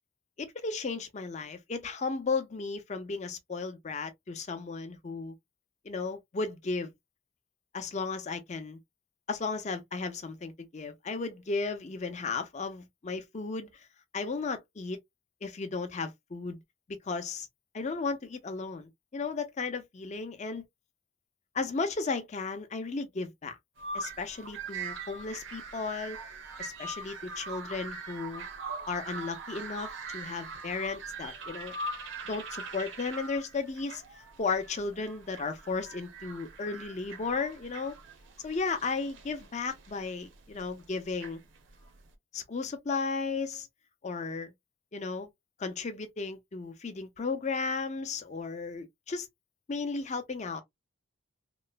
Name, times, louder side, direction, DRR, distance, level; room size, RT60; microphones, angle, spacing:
voice 1, 0.4-5.3 5.8-6.9 7.7-8.8 9.3-13.9 14.1-15.0 15.4-16.6 17.0-17.5 17.7-20.6 21.5-23.6 23.9-26.2 26.6-28.4 28.9-31.7 32.3-34.0 34.4-38.0 38.4-41.4 42.3-43.7 44.0-44.5 44.9-45.3 45.6-49.3 49.7-50.6, left 4 dB, 35° left, 0.5 m, -34 dB
sound 1, 23.8-42.1, right 3 dB, 60° right, 0.7 m, -42 dB
2.9 x 2.1 x 2.3 m
head